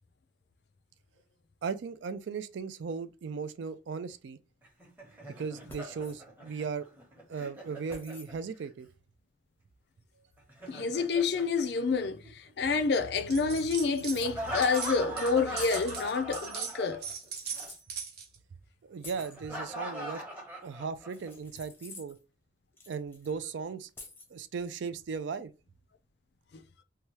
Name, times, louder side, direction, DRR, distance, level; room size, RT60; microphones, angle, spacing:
voice 1, 1.6-4.4 5.4-6.9 7.3-8.9 18.8-20.2 20.6-22.2 22.9-23.9 24.3-25.5, right 5 dB, 75° right, 0.4 m, -37 dB
Laughter, 4.6-8.7 10.4-12.5 14.2-17.3 17.5-17.7 19.2-21.3, right 1 dB, 10° right, 0.8 m, -41 dB
sound 1, 5.7-6.2 7.9-8.3 10.3-10.4 12.7-12.8 13.0-13.2 13.5-14.4 15.6-15.9 17.1-17.8 19.0-19.4 21.1-22.2 22.8-23.3 24.0-24.3, left 3 dB, 10° left, 0.6 m, -49 dB
voice 2, 10.7-17.1 26.5-26.6, left 4 dB, 60° left, 0.4 m, -28 dB
sound 2, 13.3-14.2 14.5-18.4, right 6 dB, 55° right, 0.7 m, -39 dB
2.8 x 2.3 x 3.0 m
head